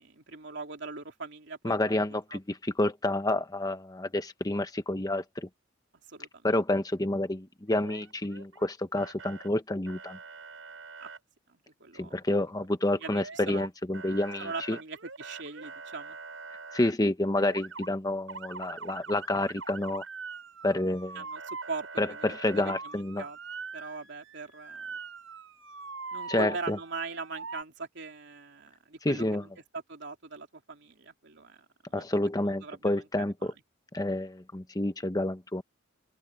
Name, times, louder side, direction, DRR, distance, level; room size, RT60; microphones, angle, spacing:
voice 1, 0.0-2.0 2.3-2.4 6.1-6.4 11.0-11.1 11.5-12.1 13.0-13.6 14.4-16.2 21.1-23.4 23.7-24.9 26.1-31.6 31.9-32.1 32.4-33.1 33.4-33.5, right 4 dB, 65° right, 3.1 m, -41 dB
voice 2, 1.6-5.5 6.4-10.2 12.0-14.8 16.7-20.0 20.6-21.2 22.0-23.2 26.3-26.8 29.0-29.4 31.9-33.5 33.9-35.6, left 1 dB, 20° left, 1.1 m, -29 dB
Motor vehicle (road) / Siren, 7.7-8.7 9.0-9.5 9.9-11.2 13.0-13.7 13.9-16.9 17.4-17.9 18.3-27.6, right 4 dB, 85° right, 7.1 m, -43 dB
open air
head